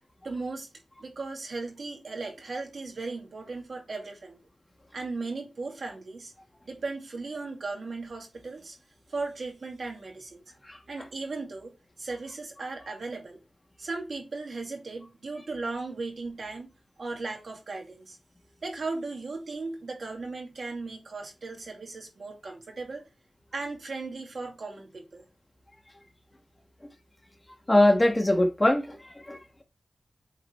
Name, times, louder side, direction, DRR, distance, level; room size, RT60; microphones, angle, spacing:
voice 1, 0.2-0.7 1.0-4.4 4.9-6.3 6.7-8.8 9.1-10.4 10.9-11.7 12.0-13.4 13.8-16.7 17.0-18.2 18.6-23.1 23.5-25.2, right 3 dB, 60° right, 2.1 m, -37 dB
voice 2, 27.7-29.6, left 1 dB, 20° left, 1.5 m, -23 dB
8.4 x 4.0 x 3.2 m
wide cardioid pair, 85°, 0 cm